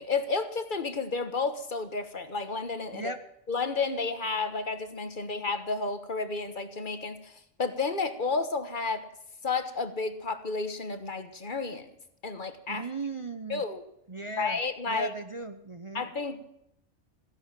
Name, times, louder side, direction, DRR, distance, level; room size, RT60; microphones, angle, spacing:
voice 1, 0.0-3.1 3.5-7.3 7.6-9.1 9.4-11.9 12.2-12.8 13.5-13.8 14.4-15.1 15.9-16.5, left 4 dB, 40° left, 10 dB, 1.4 m, -31 dB
voice 2, 12.7-13.6 14.1-14.6 14.9-16.0, right 3 dB, 30° right, 8 dB, 0.7 m, -37 dB
15.5 x 10.5 x 7.5 m, 0.79 s
omnidirectional pair, 1.4 m